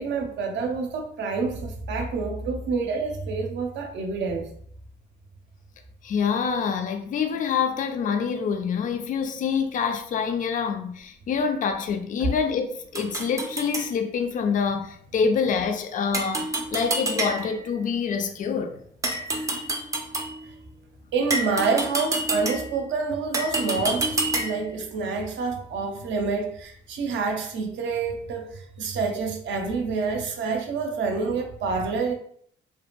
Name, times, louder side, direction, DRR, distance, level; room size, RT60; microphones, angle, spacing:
voice 1, 0.0-4.5 12.2-12.3 19.4-19.5 21.1-32.1, right 4 dB, 65° right, 0.6 m, -27 dB
voice 2, 6.0-18.8, left 6 dB, 40° left, 0.4 m, -26 dB
sound 1, 12.9-13.9 16.1-17.7 19.0-20.4 21.3-22.8 23.3-24.7, right 2 dB, 15° right, 0.4 m, -28 dB
2.6 x 2.4 x 2.2 m
cardioid pair, 90°, 20 cm